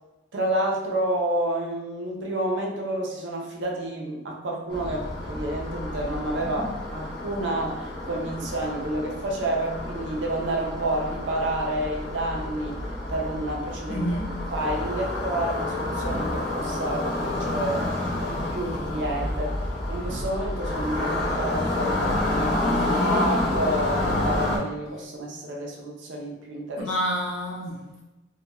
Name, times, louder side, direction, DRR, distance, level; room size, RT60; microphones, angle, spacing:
voice 1, 0.3-12.8 13.1-14.1 14.5-18.0 18.2-19.6 19.9-26.9, right 1 dB, 60° right, 0 dB, 0.5 m, -29 dB
sound 1, 4.7-24.6, left 1 dB, 5° left, 0.8 m, -29 dB
voice 2, 13.9-14.3 22.8-23.3 26.8-28.0, equal, 75° left, -3 dB, 0.7 m, -30 dB
2.9 x 2.1 x 2.2 m, 1.0 s
head